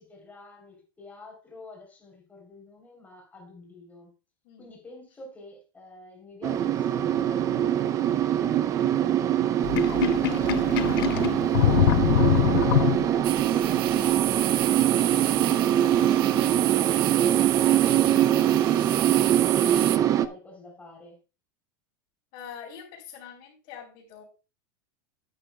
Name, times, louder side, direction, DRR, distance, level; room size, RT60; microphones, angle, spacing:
voice 1, 0.0-4.1 4.6-19.1 19.6-21.2, left 2 dB, 10° left, 3.4 m, -47 dB
sound 1, 6.4-20.3, right 11 dB, 25° right, 0.5 m, -23 dB
Sink (filling or washing), 9.6-13.4, left 14 dB, 80° left, 0.4 m, -24 dB
sound 2, 13.2-20.0, right 15 dB, 75° right, 0.5 m, -31 dB
voice 2, 22.3-24.2, left 8 dB, 50° left, 3.2 m, -44 dB
11.5 x 9.0 x 2.2 m
supercardioid pair, 145°, 12 cm